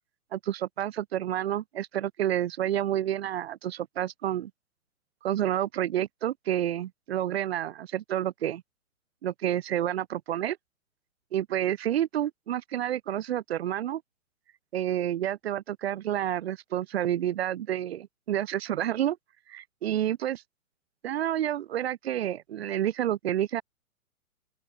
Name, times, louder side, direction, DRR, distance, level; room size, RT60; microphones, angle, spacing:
voice 1, 0.3-4.5 5.2-8.6 9.2-10.6 11.3-14.0 14.7-19.2 19.5-20.4 21.0-23.6, right 11 dB, 45° right, 0.6 m, -29 dB
open air
figure-of-eight pair, 125°, 43 cm